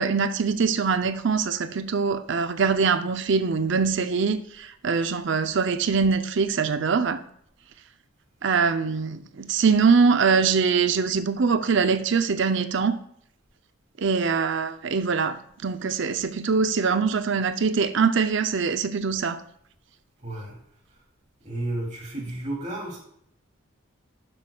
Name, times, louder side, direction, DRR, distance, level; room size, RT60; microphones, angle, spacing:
voice 1, 0.0-7.2 8.4-13.0 14.0-19.4, right 5 dB, 60° right, 0.6 m, -23 dB
voice 2, 20.2-20.6 21.4-23.0, right 1 dB, 35° right, 2.9 m, -32 dB
12.0 x 7.9 x 2.3 m
head